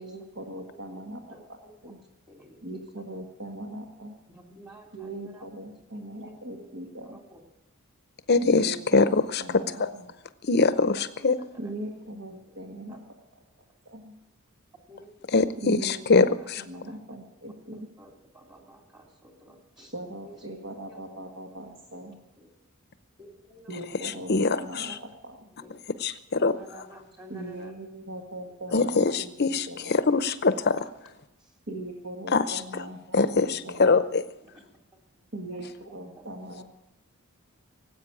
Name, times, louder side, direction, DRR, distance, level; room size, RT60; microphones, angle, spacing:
voice 1, 0.0-2.0 2.6-4.1 4.9-7.2 8.4-10.1 11.6-13.0 13.8-14.1 15.6-17.9 19.9-22.2 23.7-25.5 27.3-30.0 31.7-34.0 35.3-36.6, right 1 dB, 60° right, 2 dB, 1.7 m, -40 dB
voice 2, 1.3-1.9 2.3-2.8 4.3-5.5 5.9-6.7 7.0-7.4 10.8-11.7 12.9-13.0 14.9-15.3 15.7-15.9 16.4-16.5 16.9-17.2 17.7-19.9 20.2-20.4 20.9-21.0 22.4-22.5 23.2-23.7 24.4-24.5 24.8-25.0 25.5-25.7 26.4-27.7 28.7-28.8 31.4-31.6 32.4-32.5 34.4-35.0 35.5-35.7 36.2-36.3, equal, 20° right, 1 dB, 2.5 m, -52 dB
voice 3, 8.3-9.9 10.4-11.4 15.3-16.6 24.0-25.0 26.0-26.5 28.7-30.8 32.3-32.6 33.1-34.2, left 4 dB, 50° left, 12 dB, 0.8 m, -23 dB
18.5 x 8.5 x 8.5 m, 0.93 s
head